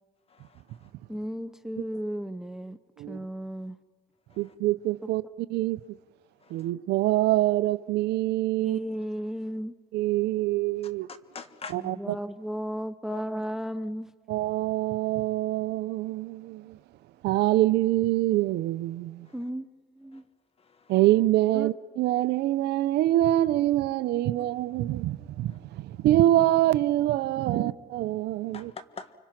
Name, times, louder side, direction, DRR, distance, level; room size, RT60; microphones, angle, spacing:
voice 1, 0.3-0.6 4.3-4.5 6.4-6.7 11.3-11.9 13.1-13.2 19.3-19.4 20.1-20.2 20.7-20.9 28.5-29.1, left 4 dB, 35° left, 1.6 m, -44 dB
voice 2, 1.1-2.8 3.1-3.8 5.0-5.1 8.6-9.7 11.7-14.1 19.3-19.7 20.0-20.2 21.5-21.7 27.5-27.7, equal, 5° right, 0.7 m, -34 dB
voice 3, 4.4-5.8 6.5-8.8 9.9-11.1 11.7-12.2 14.3-16.8 17.2-19.3 20.9-28.7, right 15 dB, 80° right, 0.7 m, -25 dB
30.0 x 25.0 x 6.0 m
cardioid pair, 110°, 17 cm